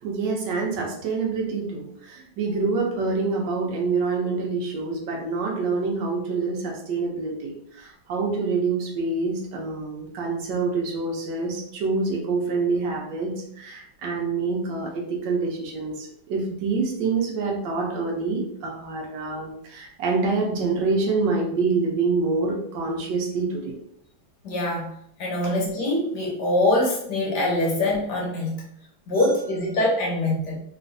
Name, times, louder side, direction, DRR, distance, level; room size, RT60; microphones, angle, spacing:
voice 1, 0.0-23.8 25.4-25.5, right 4 dB, 70° right, 0 dB, 1.2 m, -26 dB
voice 2, 24.4-24.9 25.2-28.5 29.1-30.5, left 1 dB, 60° left, -3 dB, 1.5 m, -23 dB
3.3 x 3.0 x 2.6 m, 0.69 s
omnidirectional pair, 2.1 m